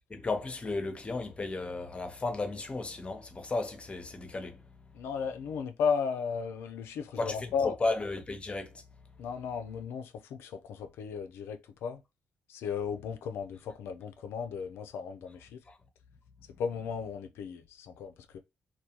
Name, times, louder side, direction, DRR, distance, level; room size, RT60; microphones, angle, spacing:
voice 1, 0.1-5.0 7.2-8.8 15.7-15.8 16.5-16.6, left 3 dB, 30° left, 0.7 m, -34 dB
voice 2, 4.9-7.8 9.2-12.0 12.5-15.6 16.6-18.4, left 6 dB, 80° left, 0.4 m, -35 dB
2.3 x 2.2 x 2.8 m
supercardioid pair, 65°, 4 cm